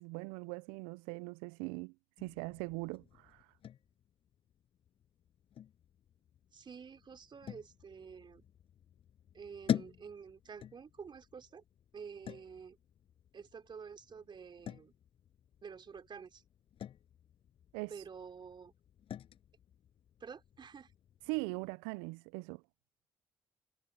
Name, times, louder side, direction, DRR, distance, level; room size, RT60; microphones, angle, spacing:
voice 1, 0.0-3.5 17.7-17.9 21.3-22.6, right 26 dB, 85° right, 0.6 m, -41 dB
sound 1, 2.2-21.7, left 10 dB, 65° left, 7.0 m, -46 dB
voice 2, 6.5-8.4 9.3-11.6 11.9-12.8 13.3-14.9 15.6-16.4 17.9-18.7 20.2-20.9, right 6 dB, 50° right, 3.7 m, -49 dB
hypercardioid pair, 40°, 10 cm